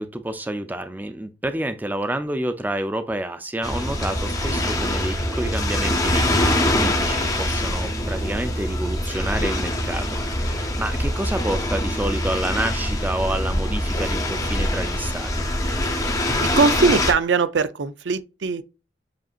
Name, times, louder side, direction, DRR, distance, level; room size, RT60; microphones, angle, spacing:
voice 1, 0.0-15.5, right 1 dB, 10° right, 0.4 m, -29 dB
sound 1, 3.6-17.1, left 1 dB, 20° left, 0.8 m, -24 dB
voice 2, 16.4-18.6, right 4 dB, 70° right, 0.5 m, -21 dB
7.6 x 2.7 x 2.4 m
head